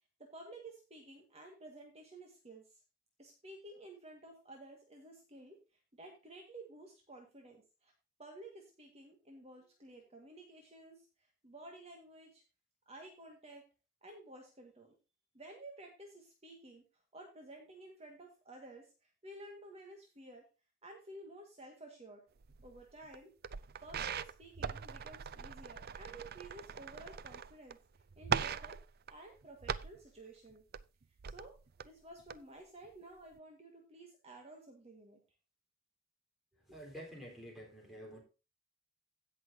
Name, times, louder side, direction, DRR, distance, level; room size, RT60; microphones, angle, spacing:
voice 1, 0.2-2.8 3.2-5.6 5.9-7.9 8.2-12.4 12.9-13.7 14.0-14.9 15.3-16.8 17.1-20.5 20.8-22.2 22.6-23.3 23.8-27.8 28.2-28.8 29.1-30.7 31.2-31.6 31.8-35.2, right 2 dB, 30° right, 1 dB, 1.8 m, -53 dB
sound 1, 22.4-23.2 23.4-27.7 28.0-30.0 30.5-31.9 32.2-32.4 32.8-32.9, right 7 dB, 50° right, 0.5 m, -40 dB
voice 2, 36.7-38.2, equal, ahead, -1 dB, 4.1 m, -49 dB
16.5 x 6.2 x 2.8 m, 0.30 s
head